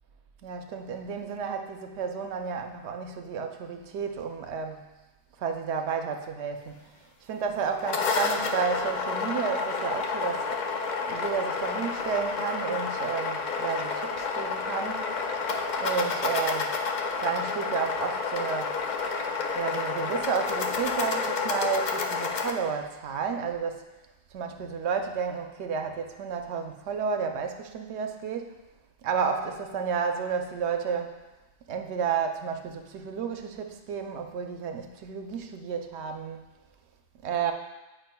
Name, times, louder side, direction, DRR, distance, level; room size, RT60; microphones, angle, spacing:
voice 1, 0.4-4.9 5.4-6.9 7.2-10.5 11.1-15.2 15.8-16.8 17.2-18.8 19.5-23.8 24.3-28.6 29.0-31.1 31.7-36.4 37.2-37.5, right 6 dB, 80° right, 5 dB, 0.9 m, -31 dB
sound 1, 7.6-22.5, left 4 dB, 55° left, 0.6 m, -30 dB
9.0 x 4.8 x 2.2 m, 1.1 s
omnidirectional pair, 1.1 m